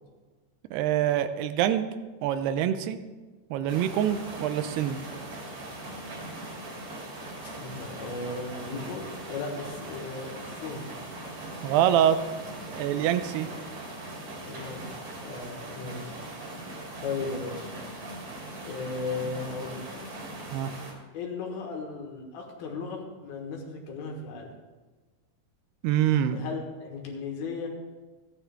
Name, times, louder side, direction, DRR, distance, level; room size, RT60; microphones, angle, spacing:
voice 1, 0.7-1.9 2.2-3.0 3.5-5.0 11.6-12.2 12.7-13.5 20.5-20.7 25.8-26.5, right 10 dB, 90° right, 10 dB, 2.7 m, -25 dB
sound 1, 3.7-20.9, right 1 dB, 40° right, 2.9 m, -40 dB
voice 2, 7.6-10.9 14.4-16.1 17.0-17.7 18.6-19.8 21.1-24.5 26.3-27.7, left 4 dB, 70° left, 0 dB, 3.3 m, -36 dB
14.5 x 10.0 x 3.5 m, 1.3 s
omnidirectional pair, 4.5 m